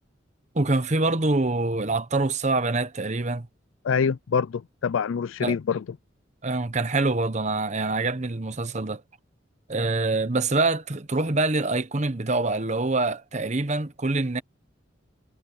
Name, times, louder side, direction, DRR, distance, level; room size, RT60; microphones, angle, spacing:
voice 1, 0.5-3.5 5.4-5.5 6.4-9.0 9.7-14.4, right 2 dB, 35° right, 1.0 m, -25 dB
voice 2, 3.8-5.8, left 6 dB, 80° left, 0.4 m, -25 dB
head